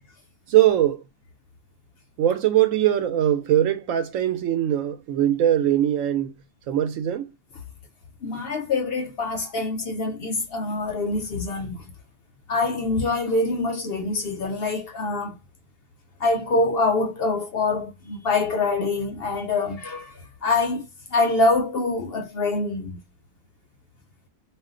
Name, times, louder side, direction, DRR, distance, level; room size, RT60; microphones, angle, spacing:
voice 1, 0.5-1.0 2.2-6.3 6.7-7.3, right 11 dB, 70° right, 1.0 m, -21 dB
voice 2, 8.2-11.9 12.5-15.4 16.2-20.1 20.4-23.0, left 3 dB, 60° left, 0.6 m, -25 dB
2.5 x 2.2 x 3.7 m
omnidirectional pair, 1.4 m